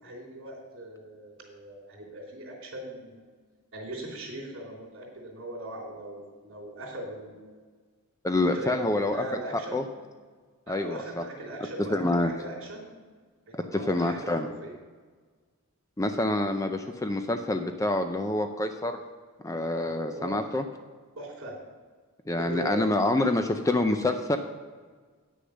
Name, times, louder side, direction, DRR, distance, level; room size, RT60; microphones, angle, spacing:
voice 1, 0.0-3.2 3.7-7.5 8.5-8.8 9.1-9.8 10.7-12.8 13.5-14.7 19.8-20.4 21.2-21.5 22.4-23.0, right 1 dB, 60° right, -1 dB, 3.2 m, -39 dB
voice 2, 8.2-9.2 9.7-9.8 10.7-11.2 11.9-12.3 13.5-14.5 16.0-19.0 19.4-20.6 22.3-24.4, left 2 dB, 15° left, 6 dB, 0.4 m, -27 dB
9.5 x 6.7 x 6.3 m, 1.5 s
head